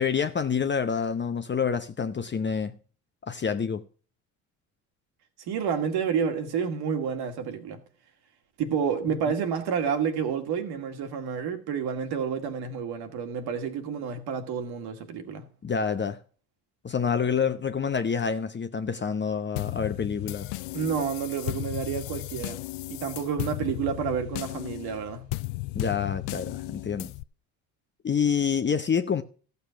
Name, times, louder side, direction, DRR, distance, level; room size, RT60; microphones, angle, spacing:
voice 1, 0.0-2.8 3.3-3.8 15.6-16.2 16.8-20.5 25.7-27.1 28.0-29.2, left 6 dB, 25° left, 0.9 m, -27 dB
voice 2, 5.5-7.8 8.6-15.5 20.7-22.6 22.9-25.3, right 7 dB, 60° right, 2.3 m, -29 dB
sound 1, 19.6-27.2, left 21 dB, 65° left, 0.6 m, -35 dB
14.5 x 6.8 x 5.8 m
hypercardioid pair, 60°, 42 cm